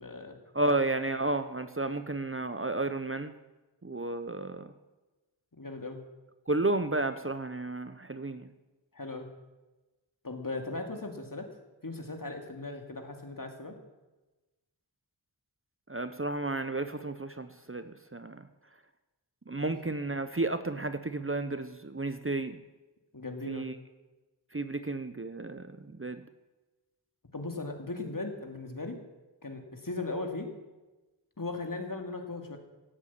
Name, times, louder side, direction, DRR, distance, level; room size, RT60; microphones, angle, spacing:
voice 1, 0.0-0.7 5.5-6.0 8.9-9.3 10.2-11.5 11.8-13.8 19.7-19.8 23.1-23.7 27.3-29.0 29.4-30.5 31.4-32.6, left 3 dB, 45° left, 4 dB, 2.6 m, -38 dB
voice 2, 0.5-3.3 3.8-4.7 6.5-8.5 15.9-18.5 19.5-22.6 23.5-23.7 24.5-26.2, right 2 dB, 30° right, 10 dB, 0.9 m, -32 dB
17.0 x 8.3 x 8.7 m, 1.1 s
wide cardioid pair, 45°, 46 cm